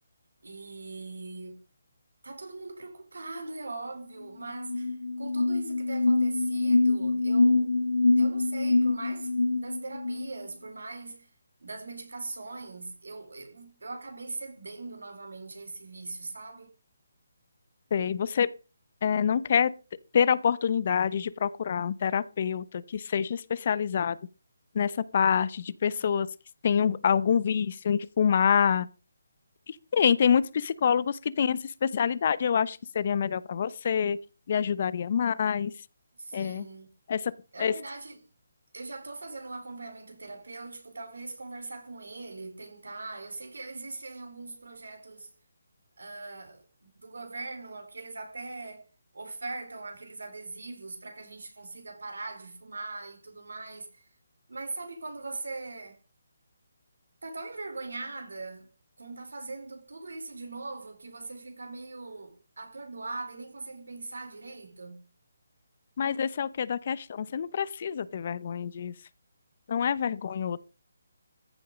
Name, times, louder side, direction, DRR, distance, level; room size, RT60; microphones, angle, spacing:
voice 1, 0.4-1.6 2.2-7.7 8.2-11.3 11.6-16.7 36.2-36.9 37.5-38.2 38.7-45.3 46.0-54.1 54.5-56.0 57.2-65.1, right 3 dB, 80° right, 4.1 m, -41 dB
sound 1, 4.2-4.3 4.5-10.3, left 3 dB, 90° left, 1.5 m, -25 dB
voice 2, 17.9-18.5 19.0-19.7 20.1-24.2 24.7-26.3 26.6-28.9 29.7-34.2 34.5-35.7 36.3-36.6 37.1-37.3 37.6-37.7 66.0-68.9 69.7-70.6, left 7 dB, 45° left, 0.8 m, -26 dB
14.5 x 8.4 x 5.2 m
figure-of-eight pair, 155°, 0 cm